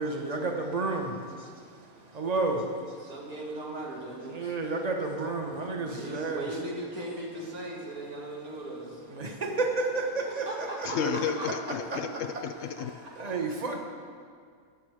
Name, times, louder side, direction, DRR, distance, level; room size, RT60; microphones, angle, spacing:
voice 1, 0.0-1.6 2.1-3.0 4.3-6.5 9.1-10.9 12.3-12.4 13.2-13.8, right 3 dB, 30° right, 2 dB, 1.3 m, -31 dB
voice 2, 3.0-4.5 5.8-9.2 10.2-11.5 11.9-12.0 12.8-12.9 13.2-13.4, right 1 dB, 85° right, -3 dB, 2.8 m, -38 dB
voice 3, 10.9-12.1 12.4-12.9, left 6 dB, 70° left, 10 dB, 0.9 m, -31 dB
19.0 x 7.3 x 4.9 m, 2.2 s
omnidirectional pair, 1.5 m